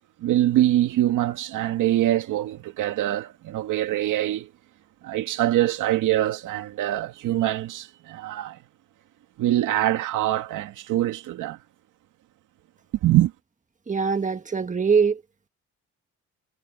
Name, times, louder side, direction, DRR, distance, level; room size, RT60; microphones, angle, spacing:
voice 1, 0.2-4.5 5.0-8.6 9.4-11.6 13.0-13.3, right 14 dB, 85° right, 2.4 m, -24 dB
voice 2, 13.9-15.2, right 5 dB, 25° right, 1.4 m, -22 dB
cardioid pair, 90°, 30 cm